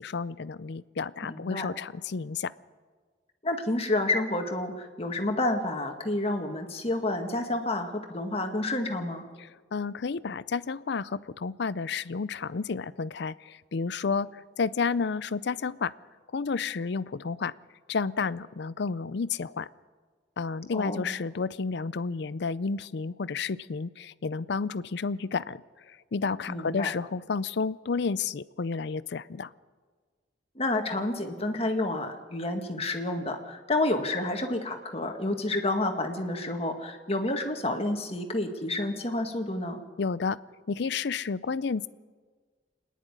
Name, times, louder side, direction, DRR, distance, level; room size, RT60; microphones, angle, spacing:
voice 1, 0.0-2.5 9.4-15.9 16.3-17.5 17.9-19.7 20.4-25.6 25.9-29.5 40.0-40.4 40.7-41.9, left 5 dB, 65° left, 17 dB, 0.5 m, -31 dB
voice 2, 1.3-1.7 3.4-9.3 20.7-21.1 26.5-26.9 30.6-39.8, left 2 dB, 35° left, 4 dB, 1.8 m, -29 dB
26.0 x 10.5 x 9.9 m, 1.5 s
head